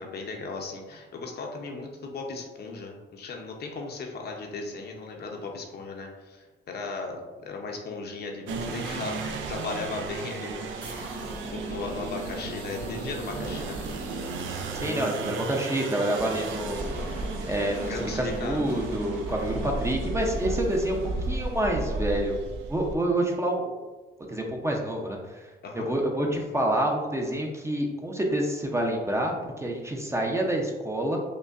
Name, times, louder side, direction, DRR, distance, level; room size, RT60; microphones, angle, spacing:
voice 1, 0.0-11.2 11.5-13.9 17.9-18.6 25.6-25.9, left 3 dB, 55° left, 1 dB, 0.7 m, -37 dB
sound 1, 8.5-23.0, right 3 dB, 75° right, 0.5 m, -34 dB
sound 2, 10.8-22.6, right 1 dB, 50° right, 1.4 m, -41 dB
voice 2, 14.7-17.2 17.5-22.4 22.7-23.8 24.3-25.5 25.7-31.2, right 1 dB, 15° right, 0 dB, 0.6 m, -28 dB
5.1 x 2.2 x 2.4 m, 1.2 s
cardioid pair, 90°, 20 cm